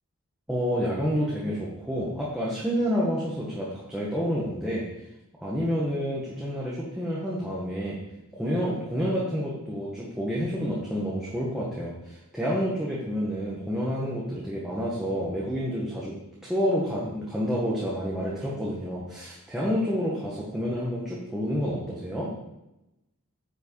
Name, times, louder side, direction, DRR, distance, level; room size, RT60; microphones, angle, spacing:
voice 1, 0.5-4.8 5.4-8.0 8.3-16.1 16.4-22.3, equal, 5° right, -7 dB, 1.5 m, -29 dB
9.7 x 6.4 x 4.8 m, 0.93 s
head